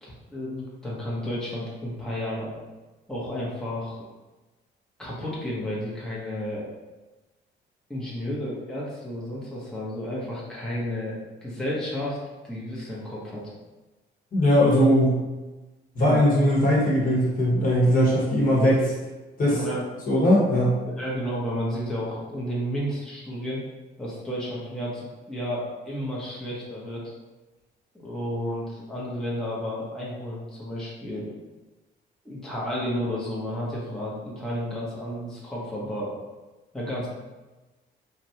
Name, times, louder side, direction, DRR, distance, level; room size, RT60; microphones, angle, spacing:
voice 1, 0.0-2.5 3.1-4.0 5.0-6.7 7.9-12.2 12.4-13.5 19.5-19.8 20.9-23.6 24.0-27.1 27.9-31.3 32.2-36.2 36.7-37.1, equal, 5° left, -7 dB, 0.9 m, -32 dB
voice 2, 14.3-15.2 15.9-18.9 19.4-19.6 20.1-20.8, equal, 45° left, -5 dB, 1.1 m, -20 dB
3.1 x 2.5 x 2.8 m, 1.1 s
cardioid pair, 90°, 20 cm